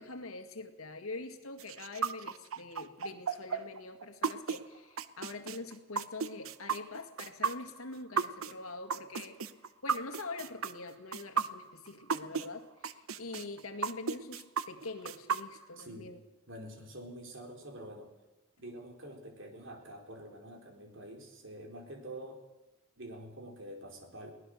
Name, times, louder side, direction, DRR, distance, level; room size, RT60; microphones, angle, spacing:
voice 1, 0.0-9.4 9.8-16.2, left 3 dB, 85° left, 7 dB, 2.0 m, -44 dB
sound 1, 1.6-12.5 12.8-15.8, right 6 dB, 75° right, 0.9 m, -34 dB
voice 2, 15.8-16.1 16.5-18.1 18.6-22.4 23.0-24.3, right 1 dB, 60° right, 3 dB, 4.1 m, -47 dB
22.5 x 18.0 x 6.5 m, 1.0 s
head